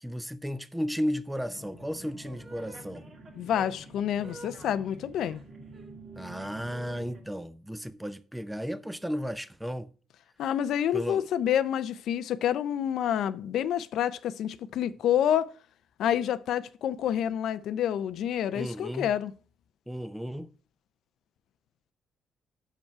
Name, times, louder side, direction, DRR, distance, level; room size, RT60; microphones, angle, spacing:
voice 1, 0.0-3.1 6.2-9.9 10.9-11.3 18.5-19.1 19.9-20.5, equal, 5° right, 0.6 m, -34 dB
sound 1, 1.5-7.2, right 2 dB, 50° right, 2.0 m, -46 dB
voice 2, 3.4-5.4 10.4-15.5 16.0-19.3, left 10 dB, 75° left, 0.4 m, -28 dB
6.1 x 5.4 x 5.6 m
cardioid pair, 90°, 0 cm